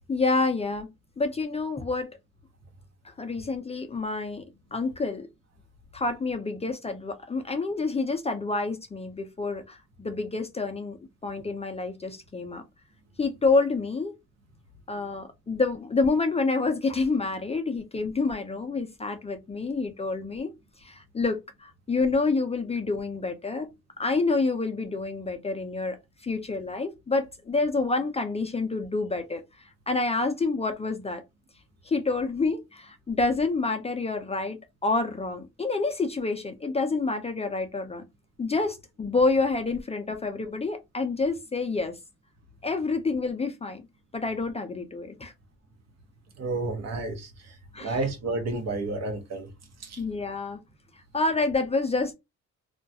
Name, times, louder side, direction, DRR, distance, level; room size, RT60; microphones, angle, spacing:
voice 1, 0.1-0.9 1.2-2.1 3.0-4.4 4.7-5.3 5.9-11.0 11.2-12.6 13.2-14.1 14.9-20.5 20.8-23.7 24.0-26.0 26.2-29.4 29.9-31.2 31.9-38.0 38.4-41.9 42.6-43.8 44.1-45.3 47.7-48.0 50.0-50.6 51.1-52.1, left 3 dB, 20° left, 0.4 m, -28 dB
voice 2, 46.4-49.5 49.8-50.0, right 2 dB, 60° right, 0.8 m, -31 dB
2.3 x 2.1 x 2.6 m
cardioid pair, 90°, 30 cm